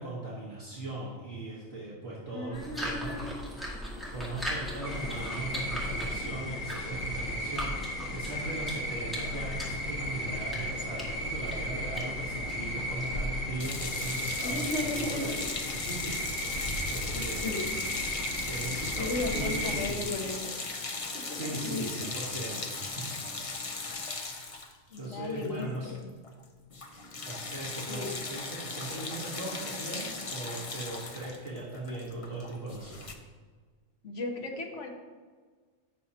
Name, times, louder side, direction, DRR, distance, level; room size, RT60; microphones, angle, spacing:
voice 1, 0.0-3.1 4.1-15.3 15.9-16.1 16.4-17.6 18.5-20.1 21.3-22.7 23.0-23.3 25.0-25.9 27.2-33.1, right 2 dB, 55° right, -6 dB, 1.8 m, -39 dB
voice 2, 2.3-3.3 14.4-15.4 16.9-17.8 19.0-20.5 21.1-21.9 24.9-26.1 27.9-28.1 34.0-34.9, left 2 dB, 70° left, 1 dB, 1.5 m, -36 dB
sound 1, 2.5-13.4, equal, ahead, 1.9 m, -40 dB
sound 2, 4.8-19.9, equal, 85° left, 1.6 m, -35 dB
sound 3, 13.6-26.0 26.2-26.4 26.7-33.1, left 3 dB, 35° left, 0.7 m, -38 dB
14.5 x 6.3 x 2.9 m, 1.5 s
omnidirectional pair, 1.3 m